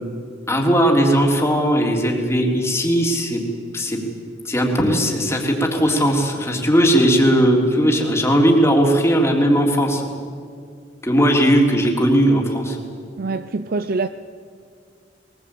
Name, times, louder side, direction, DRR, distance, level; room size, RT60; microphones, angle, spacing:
voice 1, 0.5-3.4 3.7-4.0 4.4-10.0 11.0-12.8, equal, 15° left, 3.5 m, -18 dB
voice 2, 13.2-14.1, right 3 dB, 55° right, 0.5 m, -24 dB
22.5 x 20.0 x 8.6 m
head